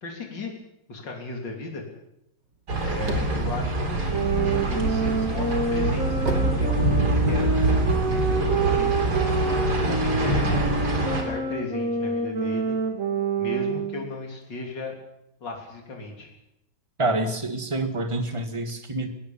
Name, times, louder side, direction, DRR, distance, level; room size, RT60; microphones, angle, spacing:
voice 1, 0.0-0.5 0.9-1.8 2.7-7.5 7.9-9.1 9.8-12.8 13.4-15.0 15.4-16.3, left 3 dB, 80° left, 1 dB, 3.8 m, -36 dB
sound 1, 2.5-4.7 5.2-7.4, right 3 dB, 85° right, 3.3 m, -33 dB
sound 2, 2.7-11.2, right 2 dB, 65° right, 4.0 m, -25 dB
sound 3, 4.1-14.1, right 3 dB, 45° right, 3.1 m, -27 dB
voice 2, 17.0-19.1, right 2 dB, 15° right, 8 dB, 1.8 m, -27 dB
21.0 x 18.0 x 7.2 m, 0.83 s
omnidirectional pair, 1.9 m